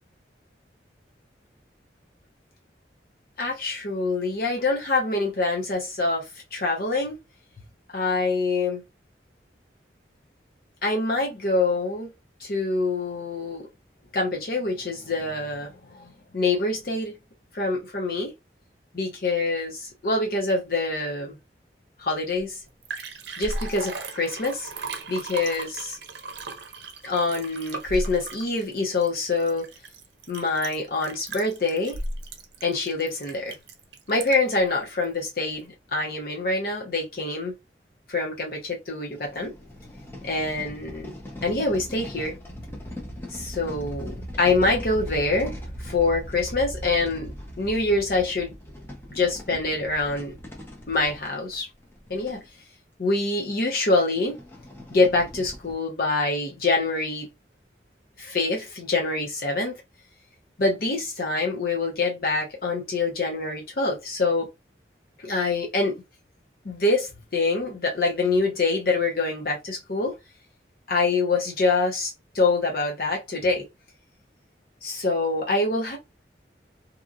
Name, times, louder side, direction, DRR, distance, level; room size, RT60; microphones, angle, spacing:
voice 1, 3.4-7.2 7.9-8.8 10.8-12.1 12.4-13.6 14.1-16.1 16.3-17.1 17.5-18.3 18.9-21.3 22.0-22.6 23.4-24.7 25.1-26.0 27.0-29.6 30.3-32.0 32.6-33.6 34.1-37.5 38.1-39.5 40.2-41.1 41.4-42.3 43.3-47.3 47.6-48.5 49.1-50.3 50.9-51.7 52.1-52.4 53.0-54.4 54.9-57.3 58.2-59.8 60.6-64.5 65.2-66.0 66.6-70.1 70.9-73.7 74.8-76.0, left 3 dB, 55° left, 0.7 m, -25 dB
Liquid, 22.4-22.5 22.7-34.6 35.0-35.1, right 2 dB, 70° right, 0.6 m, -36 dB
sound 1, 39.1-52.5 53.2-53.3 53.5-53.6 54.2-55.7, equal, 15° left, 0.7 m, -39 dB
2.9 x 2.5 x 2.4 m
head